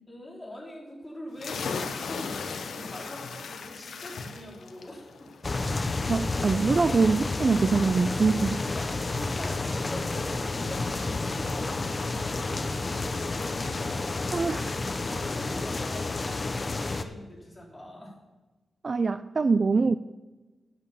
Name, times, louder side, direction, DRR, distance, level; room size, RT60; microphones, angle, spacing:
voice 1, 0.1-5.3 8.6-14.3 15.0-18.1, left 1 dB, 10° left, -5 dB, 4.1 m, -43 dB
sound 1, 1.4-14.7, left 5 dB, 75° left, 0.9 m, -41 dB
sound 2, 5.4-17.0, left 3 dB, 30° left, 0.6 m, -30 dB
voice 2, 6.1-8.6 14.3-14.7 18.8-20.0, right 4 dB, 40° right, 13 dB, 0.3 m, -24 dB
9.0 x 7.3 x 7.1 m, 1.2 s
wide cardioid pair, 125°, 0 cm